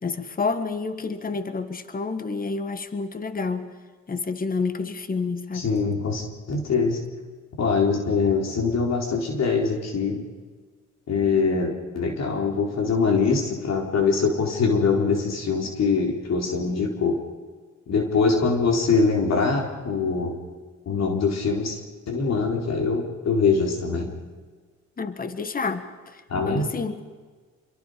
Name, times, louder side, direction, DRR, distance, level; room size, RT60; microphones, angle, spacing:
voice 1, 0.0-3.7 4.1-5.7 25.0-27.1, left 4 dB, 30° left, 10 dB, 1.7 m, -29 dB
voice 2, 5.5-7.0 7.6-10.2 11.1-17.2 17.9-20.4 20.9-24.1 26.3-26.7, left 4 dB, 60° left, 1 dB, 4.1 m, -23 dB
27.0 x 23.0 x 5.1 m, 1.5 s
cardioid pair, 90°, 30 cm